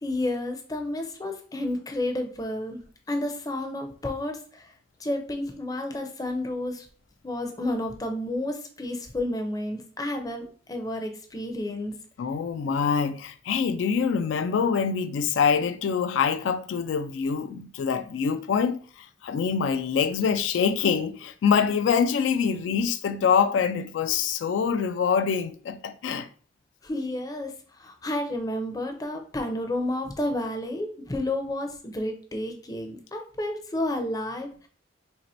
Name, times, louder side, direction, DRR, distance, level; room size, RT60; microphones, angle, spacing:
voice 1, 0.0-2.8 3.1-4.7 5.0-6.9 7.2-11.9 26.8-27.5 27.8-34.7, left 1 dB, 20° left, 0.5 m, -31 dB
voice 2, 12.2-26.3, left 6 dB, 80° left, 0.3 m, -25 dB
2.9 x 2.7 x 4.1 m
head